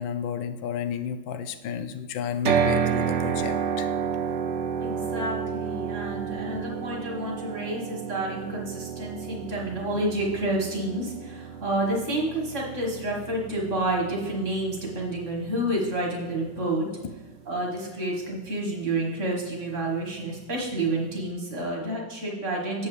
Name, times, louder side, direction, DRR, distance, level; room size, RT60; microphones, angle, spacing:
voice 1, 0.0-3.9 9.7-9.8, left 8 dB, 75° left, 8 dB, 1.3 m, -32 dB
sound 1, 2.5-16.6, right 7 dB, 75° right, 1.1 m, -31 dB
voice 2, 4.8-16.9 17.5-22.9, right 1 dB, 40° right, -2 dB, 1.7 m, -29 dB
8.5 x 7.2 x 3.2 m, 1.2 s
omnidirectional pair, 2.1 m